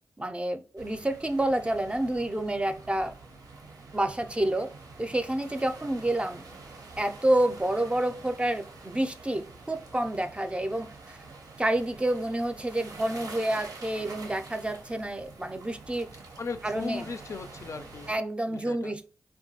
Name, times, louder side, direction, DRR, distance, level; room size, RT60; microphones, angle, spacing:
voice 1, 0.2-3.1 3.9-4.7 5.0-6.4 7.0-10.9 11.6-16.1 16.6-17.1 18.1-19.1, right 1 dB, 20° right, 0.4 m, -28 dB
sound 1, 0.8-18.2, right 3 dB, 85° right, 0.5 m, -47 dB
voice 2, 16.4-18.1 18.5-18.9, left 4 dB, 55° left, 0.3 m, -37 dB
2.9 x 2.2 x 2.7 m
cardioid pair, 50°, 6 cm